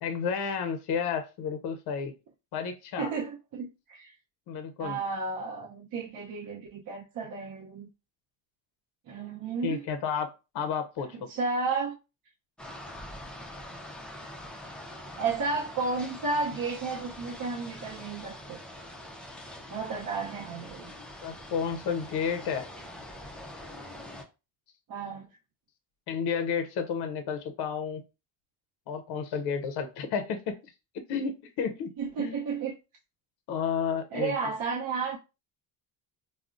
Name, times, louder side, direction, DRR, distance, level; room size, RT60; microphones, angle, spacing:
voice 1, 0.0-2.1 2.5-3.1 4.5-5.0 9.6-11.2 21.2-22.7 26.1-28.0 28.9-30.6 31.1-31.9 32.2-32.3 33.5-34.3, left 6 dB, 50° left, 0.6 m, -31 dB
voice 2, 3.0-4.1 4.8-7.9 9.1-9.9 11.1-12.0 15.2-18.6 19.7-20.9 24.9-25.3 32.0-32.7 34.1-35.2, right 4 dB, 45° right, 0.6 m, -32 dB
sound 1, 12.6-24.2, left 1 dB, ahead, 0.3 m, -44 dB
3.5 x 2.1 x 2.4 m
cardioid pair, 100°, 49 cm